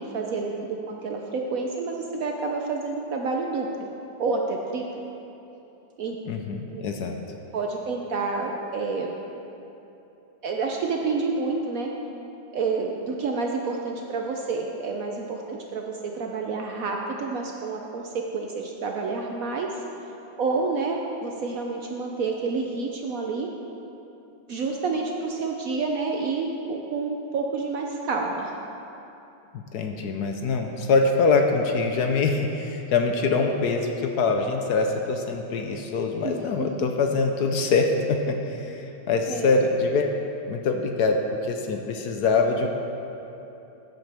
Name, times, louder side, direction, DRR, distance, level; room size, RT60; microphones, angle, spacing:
voice 1, 0.0-3.9 4.2-5.0 6.0-6.2 6.7-6.8 7.5-9.2 10.4-11.9 12.5-19.7 20.4-23.5 24.5-28.6 36.2-36.7 39.3-39.6, right 4 dB, 65° right, 1 dB, 0.9 m, -29 dB
voice 2, 6.3-7.2 29.5-40.1 40.5-42.7, left 4 dB, 70° left, 4 dB, 1.1 m, -24 dB
14.5 x 8.0 x 3.4 m, 3.0 s
omnidirectional pair, 2.0 m